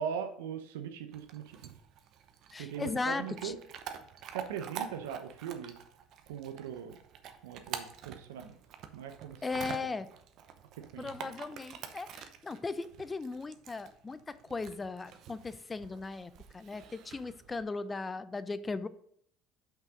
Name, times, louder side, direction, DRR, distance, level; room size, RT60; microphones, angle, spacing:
voice 1, 0.0-1.7 2.6-3.6 4.3-5.8 6.3-7.0 7.4-8.6 8.9-9.4 9.7-9.8 10.9-11.3, right 8 dB, 90° right, 8 dB, 0.8 m, -40 dB
Chewing mastication / Dog, 1.1-17.6, right 8 dB, 60° right, 0.8 m, -47 dB
voice 2, 2.5-3.6 9.4-10.1 11.0-18.9, left 3 dB, 20° left, 14 dB, 0.5 m, -37 dB
5.8 x 5.7 x 5.1 m, 0.68 s
supercardioid pair, 90°, 0 cm